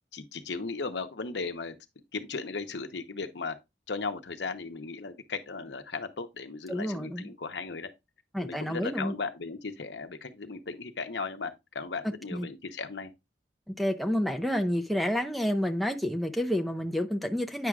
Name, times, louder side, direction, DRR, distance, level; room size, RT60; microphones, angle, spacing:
voice 1, 0.1-1.8 2.1-3.6 3.9-7.9 8.4-13.1, left 4 dB, 70° left, 0.8 m, -36 dB
voice 2, 6.7-7.3 8.3-9.1 12.3-12.5 13.7-17.7, equal, ahead, 0.5 m, -29 dB
9.1 x 6.0 x 2.4 m
head